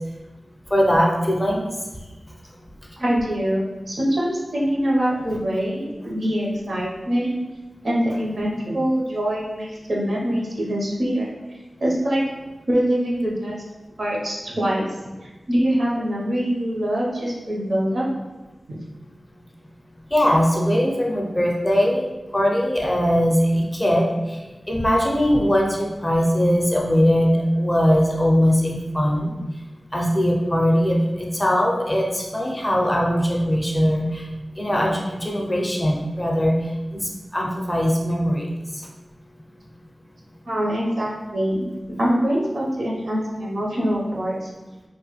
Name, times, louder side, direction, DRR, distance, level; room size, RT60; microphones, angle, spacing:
voice 1, 0.7-1.7 20.1-24.4 24.7-29.3 29.9-34.2 34.6-36.5 36.9-38.5, equal, 15° left, -2 dB, 0.4 m, -20 dB
voice 2, 3.0-7.4 7.8-11.3 11.8-12.2 12.7-13.6 14.0-14.9 15.5-18.1 40.5-41.6 42.0-44.4, equal, 65° right, -4 dB, 0.7 m, -23 dB
2.9 x 2.1 x 2.9 m, 1.1 s
wide cardioid pair, 100°, 0 cm